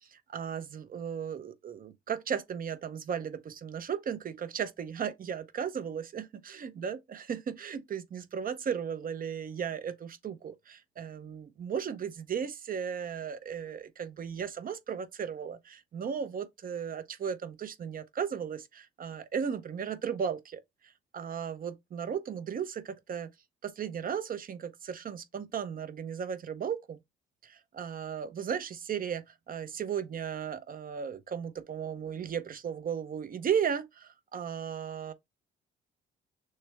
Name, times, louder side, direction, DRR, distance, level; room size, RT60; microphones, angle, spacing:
voice 1, 0.0-20.6 21.1-23.3 23.6-27.0 27.4-35.1, right 7 dB, 45° right, 0.7 m, -35 dB
6.4 x 2.1 x 3.4 m
cardioid pair, 90°, 20 cm